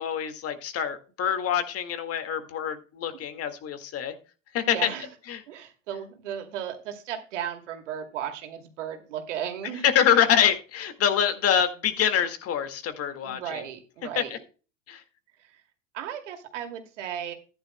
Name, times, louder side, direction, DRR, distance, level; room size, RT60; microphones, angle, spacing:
voice 1, 0.0-4.2 4.5-4.9 5.3-5.4 9.8-13.6 14.2-14.4 14.9-15.0, left 9 dB, 40° left, 9 dB, 2.0 m, -25 dB
voice 2, 4.6-5.1 5.5-9.8 13.2-14.4 15.9-17.3, right 9 dB, 70° right, 5 dB, 2.6 m, -35 dB
14.0 x 11.0 x 2.2 m, 0.35 s
hypercardioid pair, 95°, 37 cm